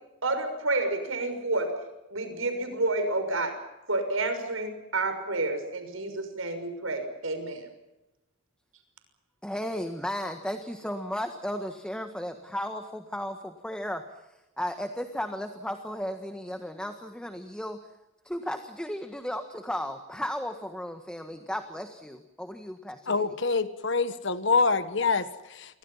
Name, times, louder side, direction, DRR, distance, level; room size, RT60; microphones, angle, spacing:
voice 1, 0.2-1.7 2.1-3.6 3.9-7.6, right 2 dB, 85° right, 8 dB, 6.3 m, -29 dB
voice 2, 9.4-14.0 14.6-17.8 18.2-23.1, equal, 5° left, 6 dB, 1.6 m, -34 dB
voice 3, 23.1-25.8, left 4 dB, 60° left, 11 dB, 1.4 m, -26 dB
29.5 x 24.0 x 5.8 m, 0.97 s
head